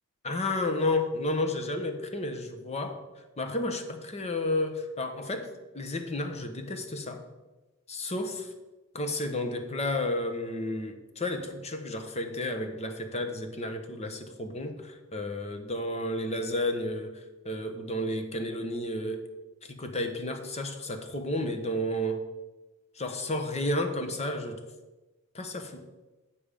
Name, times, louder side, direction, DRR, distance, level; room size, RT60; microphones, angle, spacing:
voice 1, 0.2-3.0 3.4-7.2 7.9-8.5 8.9-19.3 19.6-22.3 22.9-24.6 25.3-25.9, left 1 dB, 30° left, 6 dB, 1.0 m, -32 dB
8.6 x 7.2 x 5.1 m, 1.1 s
head